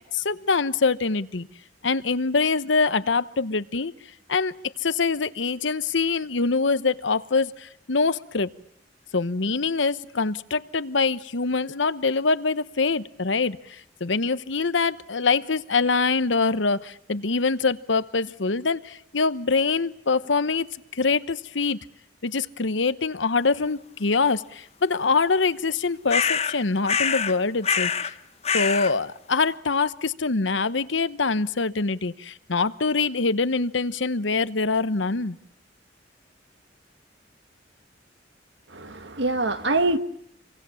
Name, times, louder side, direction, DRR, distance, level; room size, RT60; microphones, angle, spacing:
voice 1, 0.1-1.5 1.8-3.9 4.3-4.5 4.8-8.5 9.1-20.7 20.9-21.8 22.2-28.1 28.5-35.4, left 4 dB, 75° left, 1.0 m, -24 dB
sound 1, 26.1-26.6 26.9-27.4 27.6-28.1 28.4-28.9, left 6 dB, 35° left, 1.1 m, -24 dB
voice 2, 38.7-40.0, right 2 dB, 70° right, 1.8 m, -24 dB
28.5 x 24.5 x 7.1 m
head